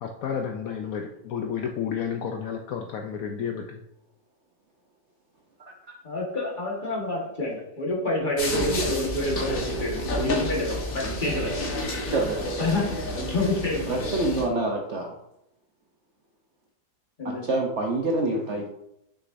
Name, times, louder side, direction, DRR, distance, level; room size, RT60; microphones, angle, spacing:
voice 1, 0.0-3.8, left 7 dB, 70° left, 4 dB, 0.9 m, -31 dB
voice 2, 6.0-11.8 12.6-14.0 17.2-17.5, left 2 dB, 30° left, -2 dB, 1.5 m, -28 dB
sound 1, 8.4-14.5, equal, 55° left, 1.6 m, -30 dB
voice 3, 12.1-12.5 13.9-15.1 17.2-18.7, right 2 dB, 55° right, 1 dB, 0.8 m, -26 dB
6.4 x 6.1 x 2.5 m, 0.81 s
omnidirectional pair, 1.8 m